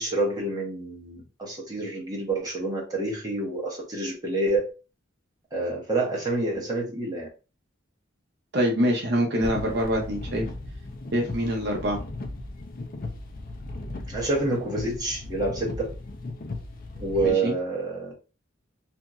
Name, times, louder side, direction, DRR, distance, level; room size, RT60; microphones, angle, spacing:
voice 1, 0.0-4.7 5.5-7.3 14.1-15.9 17.0-18.1, right 2 dB, 20° right, -3 dB, 0.9 m, -28 dB
voice 2, 8.5-10.5 11.1-12.0 17.2-17.5, equal, 55° right, 0 dB, 0.7 m, -25 dB
sound 1, 9.4-17.3, left 2 dB, 45° left, 0.5 m, -37 dB
2.8 x 2.6 x 2.3 m, 0.33 s
head